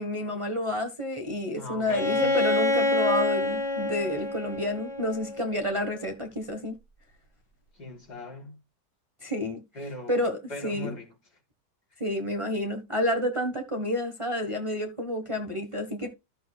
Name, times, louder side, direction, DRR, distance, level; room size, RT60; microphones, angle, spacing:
voice 1, 0.0-6.8 9.2-9.6 10.1-10.9 12.0-16.1, left 1 dB, 20° right, 1.3 m, -29 dB
voice 2, 1.6-2.4 7.7-8.6 9.7-10.2 10.5-11.1, left 1 dB, 65° left, 4.2 m, -40 dB
Bowed string instrument, 1.9-5.7, left 2 dB, 45° left, 2.6 m, -27 dB
14.0 x 6.6 x 2.3 m
omnidirectional pair, 1.9 m